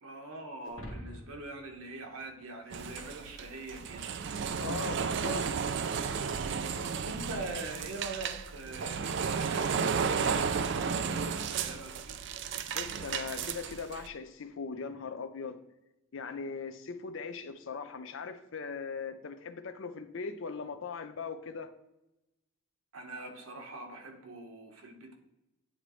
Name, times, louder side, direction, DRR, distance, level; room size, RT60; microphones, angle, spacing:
voice 1, 0.0-4.1 5.1-5.7 6.3-12.2 22.9-25.1, right 2 dB, 85° right, 1.2 m, -44 dB
Shatter, 0.6-4.1, equal, 80° left, 1.5 m, -49 dB
sound 1, 2.7-14.1, right 6 dB, 55° right, 0.4 m, -33 dB
voice 2, 4.6-5.5 12.7-15.6 16.1-21.7, left 5 dB, 65° left, 0.5 m, -40 dB
9.2 x 4.0 x 3.1 m
head